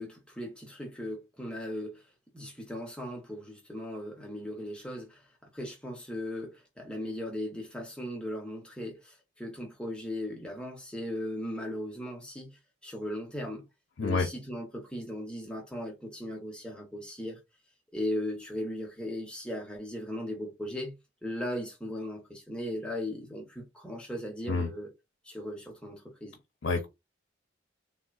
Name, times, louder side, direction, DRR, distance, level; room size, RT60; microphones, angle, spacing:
voice 1, 0.0-2.1 2.3-5.3 5.5-13.6 14.0-17.4 17.9-20.9 21.2-24.9 25.2-26.4, left 1 dB, 5° left, 0.8 m, -37 dB
voice 2, 14.0-14.3 24.5-24.7 26.6-26.9, left 4 dB, 75° left, 0.6 m, -28 dB
3.6 x 2.1 x 2.4 m
head